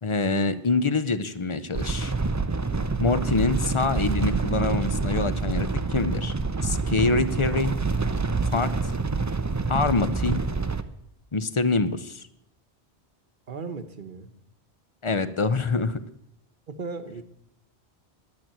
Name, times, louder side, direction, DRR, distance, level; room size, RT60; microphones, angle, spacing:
voice 1, 0.0-2.1 3.0-6.3 6.6-7.8 8.5-8.7 9.7-10.4 11.3-12.2 15.0-16.0, left 3 dB, 35° left, 13 dB, 0.6 m, -25 dB
sound 1, 1.7-10.8, right 4 dB, 25° right, 0.4 m, -27 dB
voice 2, 13.5-14.3 16.7-17.2, right 4 dB, 50° right, 10 dB, 1.1 m, -36 dB
11.5 x 7.7 x 8.9 m, 0.78 s
omnidirectional pair, 1.1 m